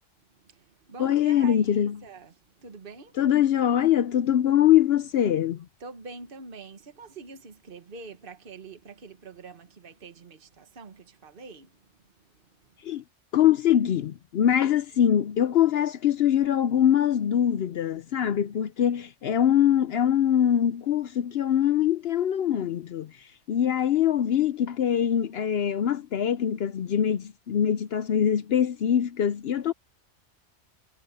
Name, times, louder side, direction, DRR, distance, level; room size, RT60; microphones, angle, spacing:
voice 1, 0.3-3.2 5.8-13.0, right 4 dB, 45° right, 1.6 m, -46 dB
voice 2, 1.0-2.0 3.2-5.7 12.8-13.0 13.3-23.1 23.5-29.7, left 10 dB, 65° left, 0.8 m, -23 dB
omnidirectional pair, 1.3 m